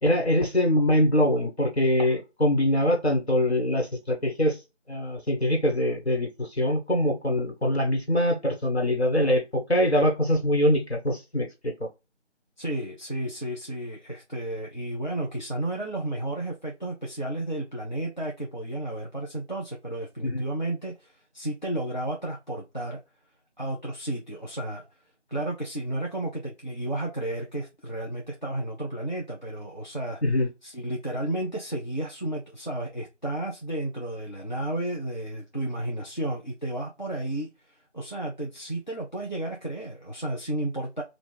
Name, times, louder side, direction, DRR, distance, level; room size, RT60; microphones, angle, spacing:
voice 1, 0.0-4.6 4.9-11.9 20.2-20.4 30.2-30.5, left 1 dB, 60° left, 1.4 m, -23 dB
voice 2, 12.6-23.0 23.6-24.9 25.3-30.2 30.6-41.0, right 1 dB, 40° left, 0.6 m, -32 dB
4.0 x 2.4 x 3.3 m
figure-of-eight pair, 180°, 36 cm